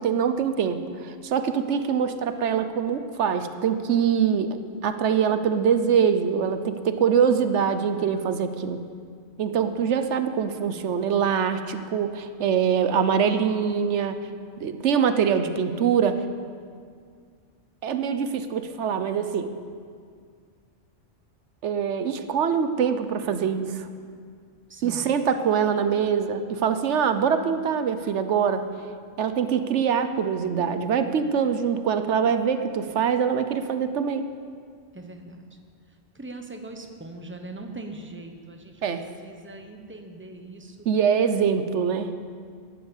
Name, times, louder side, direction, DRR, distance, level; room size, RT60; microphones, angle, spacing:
voice 1, 0.0-4.6 4.8-8.8 9.4-14.2 14.6-16.2 17.8-19.5 21.6-23.9 24.8-28.6 29.2-34.3 38.8-39.0 40.8-42.1, right 7 dB, 90° right, 10 dB, 1.1 m, -24 dB
voice 2, 24.7-25.1 34.9-35.5 36.1-40.9, right 2 dB, 10° right, 4 dB, 1.1 m, -41 dB
14.5 x 11.0 x 7.2 m, 2.1 s
omnidirectional pair, 1.2 m